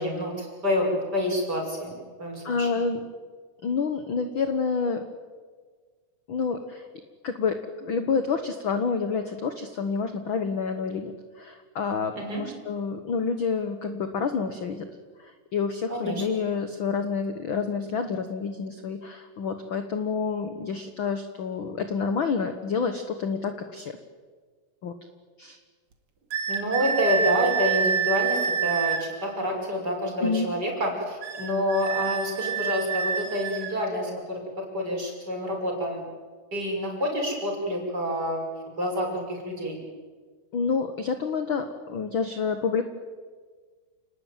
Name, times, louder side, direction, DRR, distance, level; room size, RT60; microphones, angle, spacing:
voice 1, 0.0-2.7 12.1-12.4 15.9-16.2 26.5-36.0 36.5-38.4 38.8-39.8, equal, 30° right, 0 dB, 6.3 m, -28 dB
voice 2, 2.4-3.0 3.6-5.0 6.3-6.9 7.2-14.9 15.2-24.0 24.8-24.9 25.4-25.6 30.2-30.5 40.5-42.8, left 5 dB, 55° left, 8 dB, 1.6 m, -28 dB
sound 1, 26.3-29.1 31.2-33.8, right 7 dB, 50° right, 3.0 m, -27 dB
29.0 x 19.5 x 9.2 m, 1.5 s
omnidirectional pair, 3.8 m